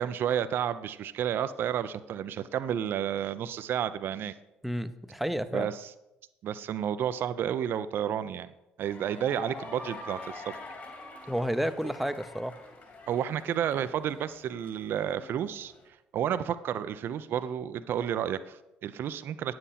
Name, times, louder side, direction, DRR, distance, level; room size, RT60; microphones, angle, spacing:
voice 1, 0.0-4.3 5.5-5.9 6.4-8.5 8.8-10.6 13.1-15.7 16.1-19.5, right 9 dB, 60° right, 13 dB, 0.5 m, -31 dB
voice 2, 4.6-5.7 11.3-12.5, equal, ahead, 11 dB, 0.7 m, -31 dB
sound 1, 8.8-15.8, left 2 dB, 45° left, 3.6 m, -46 dB
9.7 x 7.6 x 4.2 m, 0.92 s
hypercardioid pair, 55°, 4 cm